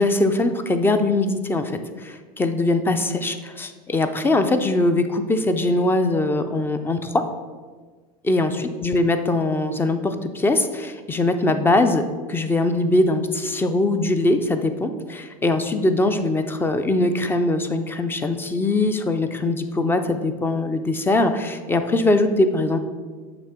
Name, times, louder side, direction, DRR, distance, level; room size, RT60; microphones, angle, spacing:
voice 1, 0.0-1.7 2.0-7.3 8.2-22.8, left 2 dB, 10° left, 9 dB, 0.4 m, -21 dB
6.9 x 3.0 x 5.7 m, 1.4 s
supercardioid pair, 115°, 21 cm